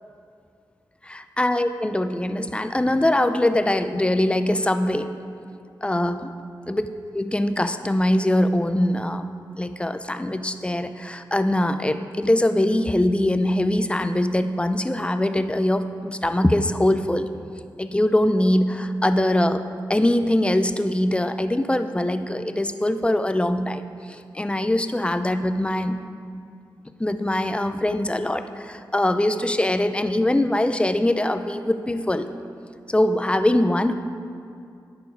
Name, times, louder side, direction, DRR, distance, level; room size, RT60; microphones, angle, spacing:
voice 1, 1.0-5.1 5.8-6.3 6.7-6.9 7.1-9.2 9.6-17.3 17.8-19.6 19.9-23.8 24.1-26.0 27.0-32.3 32.9-33.9, left 1 dB, 15° left, 10 dB, 0.5 m, -22 dB
10.5 x 6.9 x 4.6 m, 2.4 s
cardioid pair, 55°, 8 cm